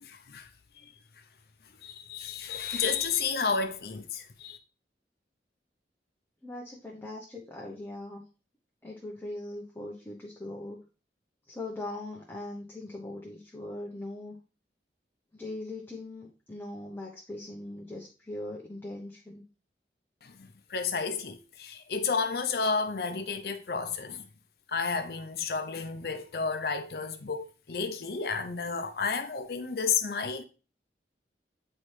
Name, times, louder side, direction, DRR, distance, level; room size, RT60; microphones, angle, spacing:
voice 1, 0.0-0.5 1.8-4.6 20.2-24.2 24.7-30.4, left 5 dB, 60° left, 0.6 m, -31 dB
voice 2, 6.4-8.2 8.8-10.8 11.5-14.3 15.3-19.4, left 2 dB, 10° left, 0.8 m, -40 dB
8.1 x 4.3 x 3.2 m
head